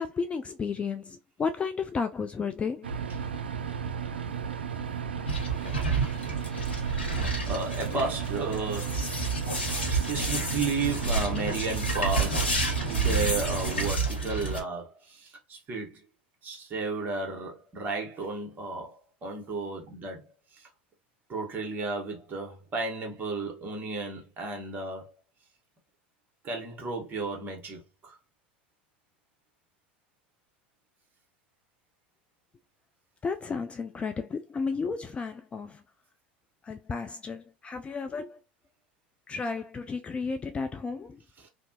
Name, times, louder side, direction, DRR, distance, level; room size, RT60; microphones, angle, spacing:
voice 1, 0.0-2.9 33.2-35.8 36.6-38.4 39.3-41.2, left 5 dB, 20° left, 0.3 m, -33 dB
sound 1, 2.8-13.9, right 7 dB, 80° right, 0.4 m, -34 dB
sound 2, 5.3-14.6, right 3 dB, 85° left, 0.9 m, -30 dB
voice 2, 7.5-9.2 9.9-16.0 16.4-20.7 21.3-25.1 26.4-28.2 41.4-41.5, right 3 dB, 35° right, 1.3 m, -33 dB
2.7 x 2.2 x 2.8 m
figure-of-eight pair, 80°, 6 cm